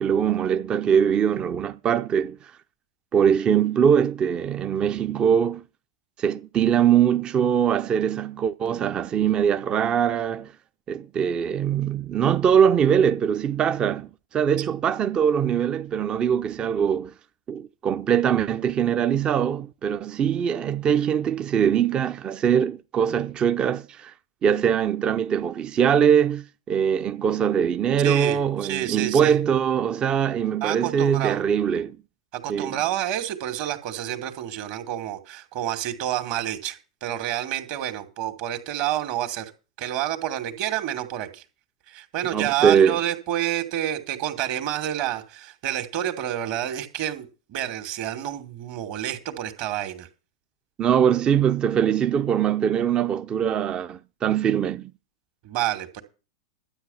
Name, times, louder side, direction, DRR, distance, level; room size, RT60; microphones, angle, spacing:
voice 1, 0.0-2.4 3.1-5.6 6.2-10.5 10.9-17.1 17.5-24.1 24.4-32.0 32.5-32.8 42.3-43.0 50.8-54.9, right 8 dB, 30° right, 0.7 m, -22 dB
voice 2, 28.0-29.3 30.6-31.4 32.3-39.5 39.8-41.4 41.9-50.1 55.4-56.0, right 12 dB, 50° right, 2.5 m, -29 dB
12.5 x 8.9 x 5.7 m
hypercardioid pair, 100°, 3 cm